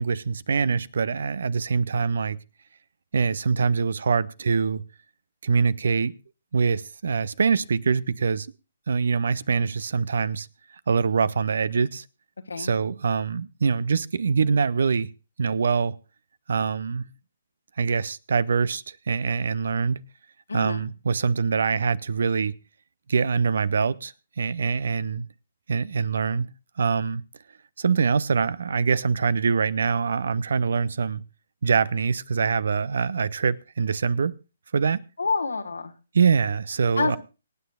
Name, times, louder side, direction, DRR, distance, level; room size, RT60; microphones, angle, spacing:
voice 1, 0.0-2.4 3.1-4.8 5.4-6.1 6.5-8.5 8.9-10.5 10.9-12.0 12.6-15.1 15.4-16.0 16.5-17.1 17.8-20.0 20.5-22.6 23.1-25.3 25.7-27.2 27.8-31.2 31.6-34.3 34.7-35.0 36.1-37.2, right 5 dB, 60° right, 0.6 m, -24 dB
voice 2, 20.5-20.9 35.2-35.9 37.0-37.2, left 4 dB, 75° left, 1.4 m, -27 dB
25.5 x 9.3 x 2.4 m
figure-of-eight pair, 135°, 0 cm